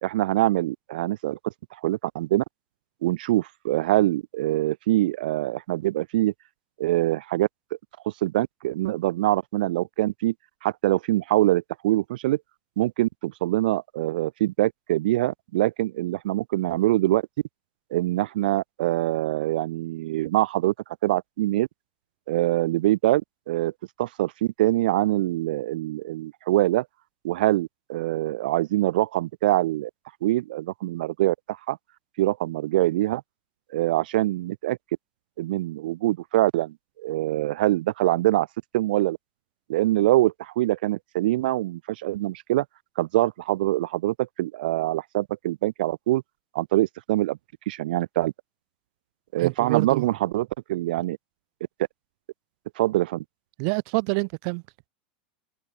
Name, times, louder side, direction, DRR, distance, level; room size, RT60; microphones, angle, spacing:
voice 1, 0.0-1.5 1.8-2.4 3.0-6.3 6.8-7.5 8.2-10.3 10.6-12.4 12.8-17.2 17.9-20.7 21.0-21.7 22.3-23.7 24.0-26.8 27.2-29.9 30.2-31.8 32.2-33.2 33.7-34.8 35.4-38.5 38.7-39.2 39.7-42.6 43.0-46.2 46.5-47.4 47.7-48.3 49.3-51.2 52.8-53.2, right 16 dB, 75° right, 1.8 m, -24 dB
voice 2, 49.4-50.1 53.6-54.6, right 38 dB, 55° right, 4.0 m, -27 dB
supercardioid pair, 135°, 5 cm